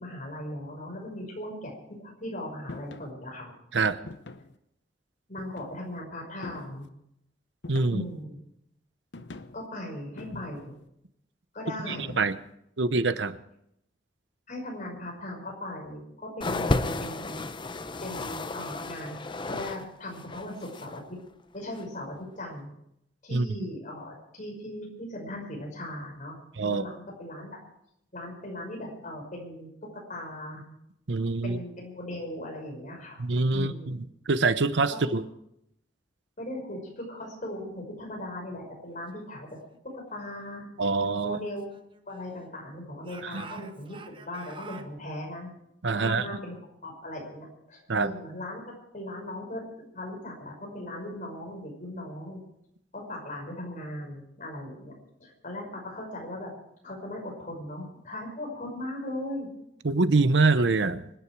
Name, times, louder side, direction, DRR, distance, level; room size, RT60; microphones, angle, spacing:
voice 1, 0.0-3.5 5.3-6.9 7.9-8.4 9.5-10.7 11.5-12.1 14.5-17.4 18.0-19.2 19.4-21.2 21.5-22.7 23.2-26.4 26.6-27.6 28.1-29.7 30.1-30.6 31.4-33.2 33.5-33.9 35.0-35.1 36.4-39.6 39.9-40.7 41.2-41.7 42.0-45.5 45.9-46.5 46.8-49.6 49.9-52.4 52.9-54.9 55.2-56.5 56.8-59.5, left 1 dB, 45° left, 0 dB, 5.7 m, -38 dB
sound 1, 2.7-3.1 4.1-4.6 5.4-5.9 6.4-6.9 7.6-8.2 9.1-9.7 10.2-10.8 11.9-12.5, left 2 dB, 80° left, 0.9 m, -43 dB
voice 2, 7.7-8.0 11.9-12.3 12.8-13.4 23.3-23.5 26.6-26.9 31.1-31.6 33.2-35.2 40.8-41.4 43.2-43.4 45.8-46.3 47.9-48.1 59.8-61.1, right 3 dB, 85° right, 13 dB, 0.8 m, -25 dB
sound 2, 16.4-19.8 20.1-21.0 21.7-21.8, left 2 dB, 25° left, 0.7 m, -32 dB
Speech / Shout, 41.0-42.6 43.0-44.9, right 5 dB, 30° right, 1.1 m, -48 dB
25.0 x 10.0 x 4.7 m, 0.79 s
head